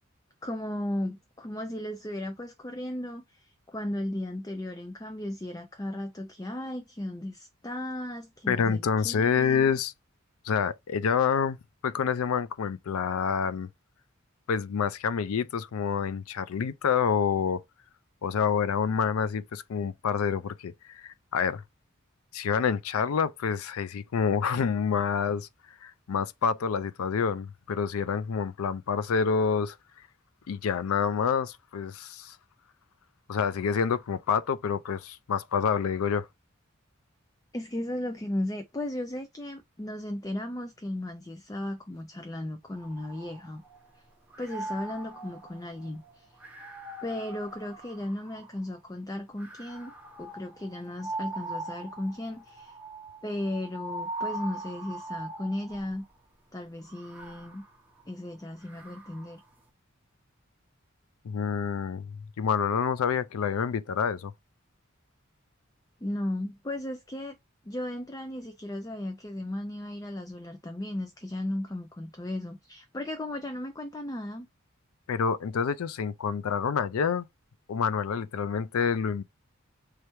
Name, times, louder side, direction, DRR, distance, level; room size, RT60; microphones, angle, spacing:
voice 1, 0.4-9.6 37.5-43.6 43.9-44.1 44.4-46.4 47.0-49.9 50.2-52.8 53.2-56.0 56.5-57.6 58.1-59.4 66.0-67.4 67.7-74.5, left 1 dB, 15° left, 0.5 m, -35 dB
voice 2, 8.5-9.9 10.4-11.6 11.8-13.7 14.5-17.6 18.2-21.6 22.3-25.5 25.8-29.8 30.5-32.4 33.3-36.3 61.2-64.3 75.1-77.3 77.7-79.2, left 6 dB, 90° left, 0.4 m, -27 dB
sound 1, 42.7-43.9 44.3-48.7 49.4-56.1 56.8-59.4, right 2 dB, 5° right, 0.9 m, -41 dB
3.3 x 3.1 x 4.5 m
head